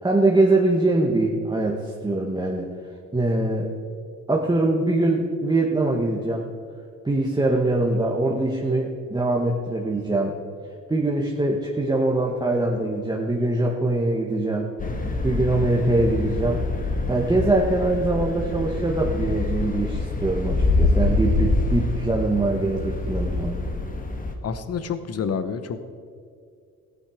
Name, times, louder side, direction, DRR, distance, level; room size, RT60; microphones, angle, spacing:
voice 1, 0.0-2.7 3.1-3.7 4.3-6.5 7.0-10.4 10.9-14.8 15.2-16.6 17.1-23.6, right 2 dB, 15° right, -2 dB, 1.3 m, -23 dB
sound 1, 14.8-24.3, left 2 dB, 25° left, 1.5 m, -25 dB
voice 2, 24.4-25.8, left 6 dB, 55° left, 11 dB, 1.0 m, -28 dB
15.0 x 9.1 x 5.0 m, 2.3 s
cardioid pair, 90°, 30 cm